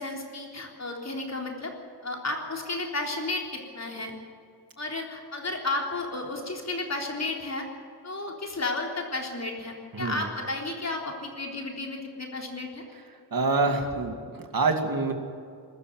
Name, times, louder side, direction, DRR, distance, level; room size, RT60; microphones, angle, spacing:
voice 1, 0.0-1.7 2.0-4.2 4.8-7.7 8.0-12.8, left 2 dB, 40° left, 1 dB, 3.7 m, -33 dB
voice 2, 9.9-10.3 13.3-15.1, right 3 dB, 55° right, 4 dB, 2.4 m, -26 dB
21.0 x 13.5 x 9.5 m, 2.3 s
wide cardioid pair, 135°, 40 cm